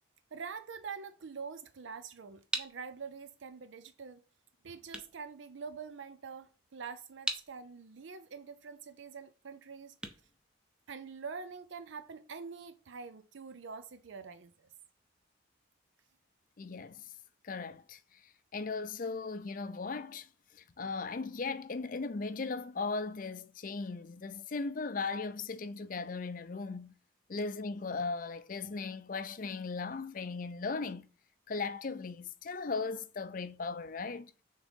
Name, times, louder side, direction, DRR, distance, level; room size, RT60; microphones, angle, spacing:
voice 1, 0.3-4.2 4.6-9.9 10.9-14.7, right 5 dB, 70° right, 0.5 m, -45 dB
sound 1, 2.5-11.3, right 1 dB, 5° right, 0.6 m, -44 dB
voice 2, 16.6-17.1 17.4-20.3 20.5-26.9 27.3-31.1 31.5-34.3, left 4 dB, 45° left, 0.5 m, -38 dB
6.2 x 3.7 x 5.3 m
head